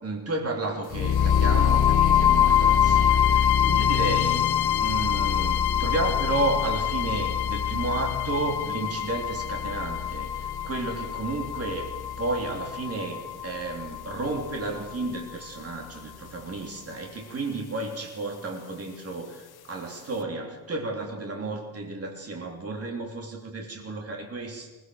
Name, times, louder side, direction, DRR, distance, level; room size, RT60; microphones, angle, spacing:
voice 1, 0.0-24.7, right 2 dB, 40° right, 1 dB, 3.4 m, -32 dB
sound 1, 0.9-14.9, left 9 dB, 75° left, 1.0 m, -24 dB
21.5 x 19.5 x 6.4 m, 1.2 s
wide cardioid pair, 165°, 38 cm